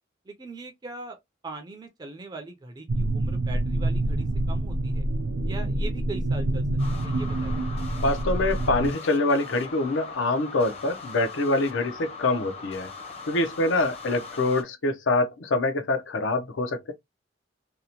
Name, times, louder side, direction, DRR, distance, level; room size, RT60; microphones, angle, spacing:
voice 1, 0.3-1.2 1.4-5.0 5.5-6.6 6.9-7.7, right 3 dB, 20° right, 0.3 m, -40 dB
sound 1, 2.9-8.9, right 1 dB, 90° right, 0.6 m, -27 dB
sound 2, 6.8-14.6, left 4 dB, 30° left, 0.6 m, -41 dB
voice 2, 8.0-12.9 13.3-16.9, left 2 dB, 80° left, 0.6 m, -25 dB
2.8 x 2.0 x 2.8 m
head